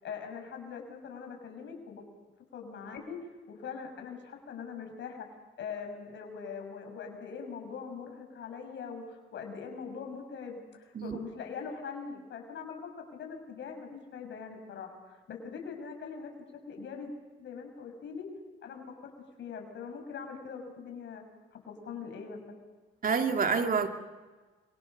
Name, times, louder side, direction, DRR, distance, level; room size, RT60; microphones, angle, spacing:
voice 1, 0.0-2.0 2.5-3.2 3.5-5.3 5.6-16.3 16.7-17.1 17.4-18.3 18.6-19.1 19.4-21.2 21.5-22.4, left 6 dB, 65° left, 4 dB, 6.4 m, -42 dB
voice 2, 23.0-23.9, right 5 dB, 45° right, 5 dB, 2.5 m, -27 dB
28.0 x 24.0 x 6.7 m, 1.3 s
cardioid pair, 90°, 20 cm